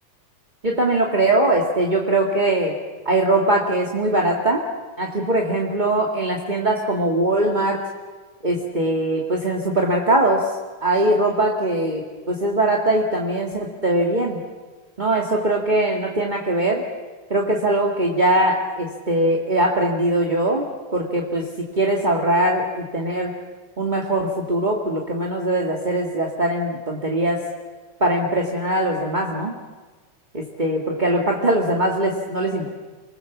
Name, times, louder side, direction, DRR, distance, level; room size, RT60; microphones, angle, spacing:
voice 1, 0.6-2.8 3.0-4.6 5.0-7.8 8.4-10.4 10.8-12.0 12.3-14.4 15.0-16.8 17.3-20.7 20.9-21.5 21.8-23.4 23.8-27.4 28.0-29.5 30.3-32.7, right 1 dB, 20° right, -1 dB, 1.3 m, -21 dB
28.5 x 20.5 x 7.2 m, 1.3 s
omnidirectional pair, 3.7 m